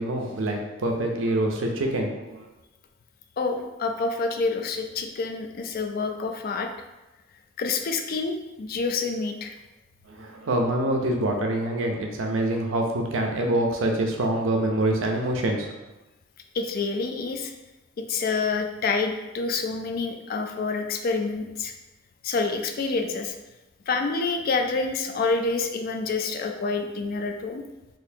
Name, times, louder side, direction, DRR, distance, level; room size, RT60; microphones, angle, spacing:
voice 1, 0.0-2.5 10.1-15.8, right 1 dB, 85° right, 2 dB, 0.6 m, -25 dB
voice 2, 3.4-6.7 7.6-9.5 16.5-17.5 18.0-21.7 22.2-23.3 23.9-27.6, left 4 dB, 50° left, 5 dB, 0.4 m, -27 dB
4.1 x 2.6 x 2.7 m, 1.1 s
head